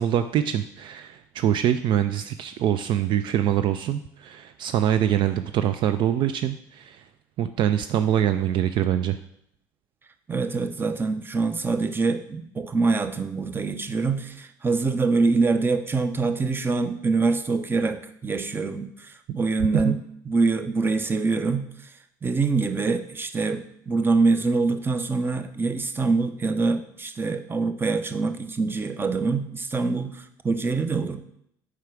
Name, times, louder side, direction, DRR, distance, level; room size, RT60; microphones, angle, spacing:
voice 1, 0.0-7.1 7.4-9.2 19.3-19.4 19.7-20.0, right 10 dB, 55° right, 10 dB, 0.3 m, -24 dB
voice 2, 10.3-20.0 20.3-21.9 22.2-31.2, right 4 dB, 20° right, 9 dB, 0.7 m, -25 dB
4.8 x 4.7 x 6.1 m, 0.74 s
hypercardioid pair, 70°, 10 cm